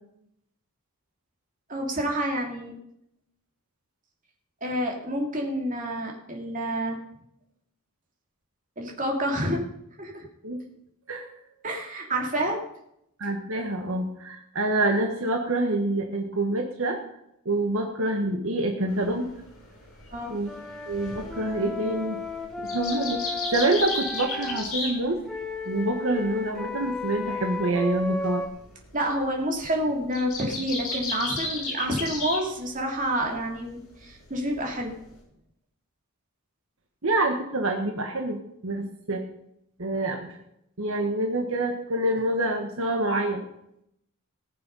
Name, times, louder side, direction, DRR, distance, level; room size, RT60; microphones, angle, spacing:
voice 1, 1.7-2.7 4.6-7.0 8.8-9.6 10.0-10.2 11.6-12.6 20.1-20.3 28.9-34.9, right 1 dB, 35° right, 1 dB, 2.7 m, -28 dB
voice 2, 13.2-17.0 17.4-19.3 20.3-20.5 20.9-22.2 22.6-23.2 23.5-25.2 25.6-28.4 37.0-39.2 39.8-40.4 40.8-43.5, right 2 dB, 65° right, 3 dB, 1.4 m, -26 dB
sound 1, 18.9-25.6 25.9-32.4 32.7-33.4 33.8-35.2, left 3 dB, 80° left, 6.5 m, -35 dB
Wind instrument woodwind instrument, 20.5-24.7 25.3-28.5, left 3 dB, ahead, 1.1 m, -34 dB
19.5 x 6.9 x 5.5 m, 0.77 s
head